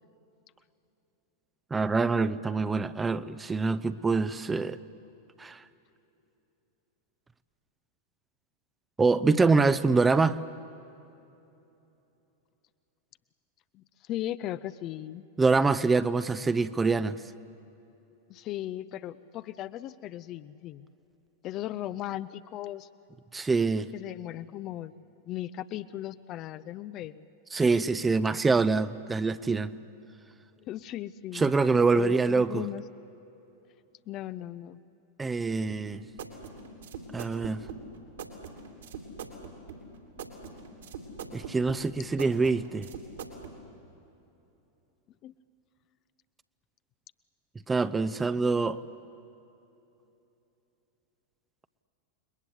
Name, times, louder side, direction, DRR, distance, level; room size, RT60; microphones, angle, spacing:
voice 1, 1.7-4.8 5.4-5.6 9.0-10.4 15.4-17.2 23.3-23.9 27.5-29.7 31.3-32.7 35.2-36.0 37.1-37.6 41.3-42.9 47.7-48.8, right 4 dB, 15° right, 0.7 m, -25 dB
voice 2, 13.7-15.2 18.3-20.9 21.4-22.9 23.9-24.9 25.2-27.2 30.6-31.5 31.9-32.8 34.1-34.8 45.2-45.3, left 13 dB, 35° left, 0.6 m, -37 dB
sound 1, 35.7-43.6, right 6 dB, 65° right, 3.1 m, -42 dB
29.5 x 21.5 x 8.3 m
figure-of-eight pair, 90°, 0 cm